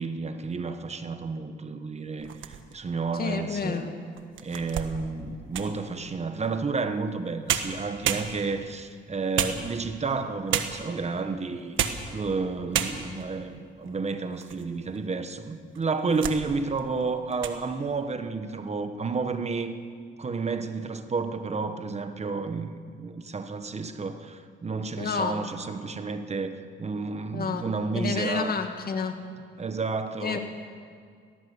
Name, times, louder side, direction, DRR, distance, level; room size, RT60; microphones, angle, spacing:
voice 1, 0.0-3.9 4.4-11.8 12.1-19.7 20.2-28.5 29.6-30.4, right 4 dB, 35° right, 9 dB, 1.3 m, -31 dB
sound 1, 2.2-2.9 3.5-3.6 4.2-5.8 7.1-7.2 7.5-8.7 9.4-10.1 10.5-11.0 11.6-12.1 12.4-12.5 12.7-13.3 13.9-14.6 15.0-15.1 15.7-16.4 16.8-17.0 17.3-17.6, right 9 dB, 75° right, 1.4 m, -30 dB
voice 2, 3.1-3.9 25.0-25.4 27.3-27.6 27.9-29.1 30.2-30.4, left 5 dB, 50° left, 6 dB, 2.2 m, -29 dB
18.5 x 17.5 x 8.1 m, 2.1 s
cardioid pair, 90°, 20 cm